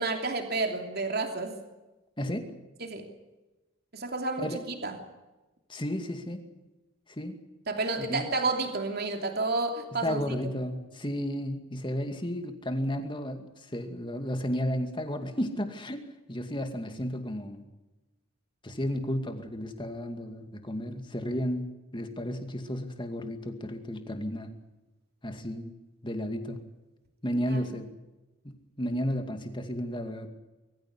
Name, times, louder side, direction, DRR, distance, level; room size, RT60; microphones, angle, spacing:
voice 1, 0.0-1.6 2.8-3.1 3.9-4.5 4.8-4.9 7.7-10.2 27.5-27.7, right 3 dB, 50° right, 4 dB, 3.0 m, -30 dB
voice 2, 2.2-2.5 4.4-4.6 5.7-6.4 7.1-7.4 8.0-8.3 10.0-16.0 16.3-17.6 18.6-21.7 21.9-24.5 25.2-25.7 26.0-26.6 27.2-27.9 28.4-30.3, equal, 25° left, 6 dB, 2.3 m, -33 dB
23.0 x 15.0 x 9.7 m, 1.1 s
head